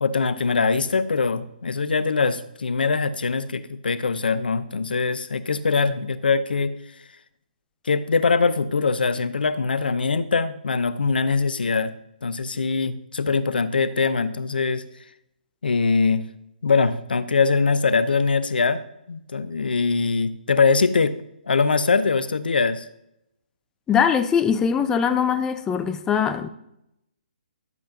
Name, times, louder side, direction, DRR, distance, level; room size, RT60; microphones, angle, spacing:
voice 1, 0.0-6.7 7.8-11.9 12.2-14.8 15.6-16.3 16.6-18.8 19.1-21.1 21.5-22.9, left 4 dB, 70° left, 0.6 m, -22 dB
voice 2, 23.9-26.5, left 7 dB, 10° left, 0.4 m, -21 dB
12.0 x 8.4 x 2.7 m
figure-of-eight pair, 140°, 5 cm